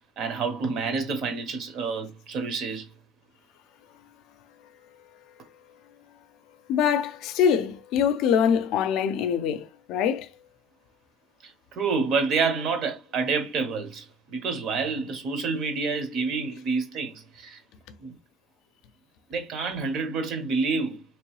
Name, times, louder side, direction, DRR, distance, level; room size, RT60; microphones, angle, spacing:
voice 1, 0.2-2.9 11.4-17.6 18.0-18.1 19.3-21.0, right 4 dB, 45° right, 0.9 m, -28 dB
voice 2, 6.7-10.3, left 8 dB, 60° left, 0.5 m, -24 dB
3.7 x 3.0 x 3.1 m
cardioid pair, 165°, 0 cm